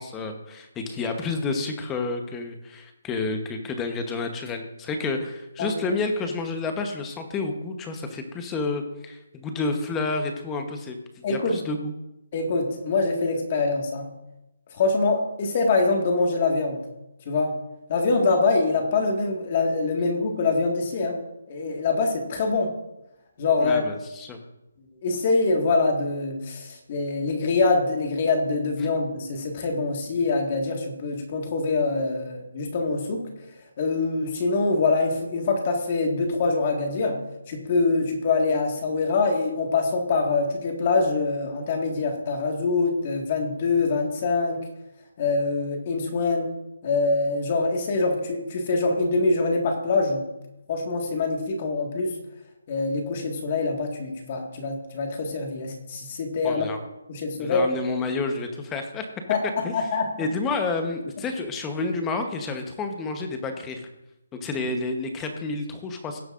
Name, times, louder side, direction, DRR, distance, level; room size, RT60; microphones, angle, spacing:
voice 1, 0.0-11.9 23.6-24.4 56.4-56.8 57.4-59.0 59.6-59.9 60.2-63.9 64.3-66.2, left 3 dB, 10° left, 6 dB, 1.0 m, -30 dB
voice 2, 11.2-11.5 12.3-14.1 14.7-16.8 17.3-17.6 17.9-21.2 21.5-22.8 23.4-23.8 25.0-33.3 33.8-37.2 37.5-44.6 45.2-46.5 46.8-50.3 50.7-52.1 52.7-56.7 57.1-57.6 59.3-60.2, left 3 dB, 35° left, 3 dB, 1.7 m, -24 dB
18.0 x 7.8 x 2.5 m, 0.93 s
hypercardioid pair, 165°, 0 cm